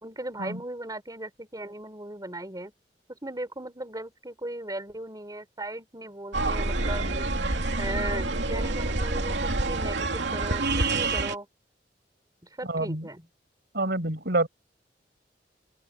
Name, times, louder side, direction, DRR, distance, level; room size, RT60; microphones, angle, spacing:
voice 1, 0.0-2.7 3.1-11.5 12.6-13.3, right 1 dB, 20° right, 4.1 m, -37 dB
sound 1, 6.3-11.3, right 2 dB, 80° right, 2.8 m, -27 dB
voice 2, 12.7-13.1 13.7-14.5, right 2 dB, 65° right, 5.7 m, -27 dB
open air
head